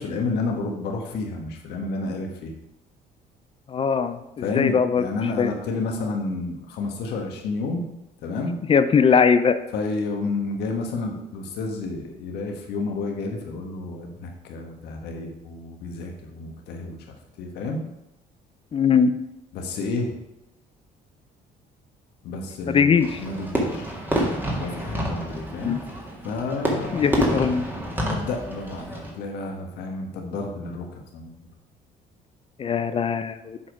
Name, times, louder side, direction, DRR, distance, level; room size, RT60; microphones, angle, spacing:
voice 1, 0.0-2.5 4.4-7.8 8.2-8.6 9.7-17.0 17.4-17.8 19.5-20.1 22.2-22.9 23.2-23.9 24.6-25.8 26.2-27.4 28.0-31.3, left 3 dB, 80° left, 2 dB, 1.4 m, -30 dB
voice 2, 3.7-5.0 5.4-5.5 8.7-9.6 18.7-19.1 22.7-23.2 25.6-25.8 26.9-27.6 32.6-33.6, left 6 dB, 35° left, 11 dB, 0.5 m, -20 dB
Fireworks, 23.0-29.1, right 1 dB, 10° right, 1.8 m, -28 dB
7.5 x 4.4 x 5.2 m, 0.90 s
cardioid pair, 110°, 17 cm